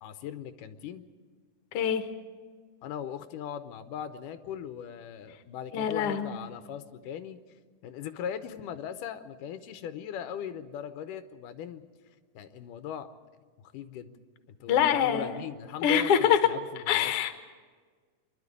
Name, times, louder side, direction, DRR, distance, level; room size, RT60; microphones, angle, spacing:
voice 1, 0.0-1.0 2.8-7.4 7.8-11.8 12.3-13.1 13.7-14.1 14.5-17.1, left 9 dB, 85° left, 10 dB, 2.4 m, -39 dB
voice 2, 1.7-2.0 5.7-6.3 14.7-15.4 15.8-16.5 16.9-17.4, left 9 dB, 55° left, 8 dB, 1.8 m, -24 dB
25.0 x 11.5 x 9.7 m, 1.5 s
omnidirectional pair, 3.7 m